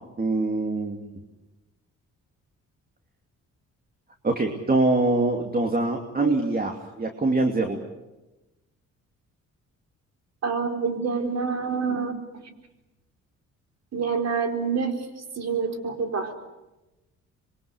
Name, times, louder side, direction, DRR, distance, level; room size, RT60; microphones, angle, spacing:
voice 1, 0.2-1.1 4.2-7.8, right 2 dB, 30° right, 4 dB, 2.6 m, -24 dB
voice 2, 10.4-12.5 13.9-14.9 15.4-16.4, right 5 dB, 60° right, 5 dB, 4.5 m, -27 dB
27.0 x 23.5 x 8.4 m, 1.0 s
cardioid pair, 90°, 30 cm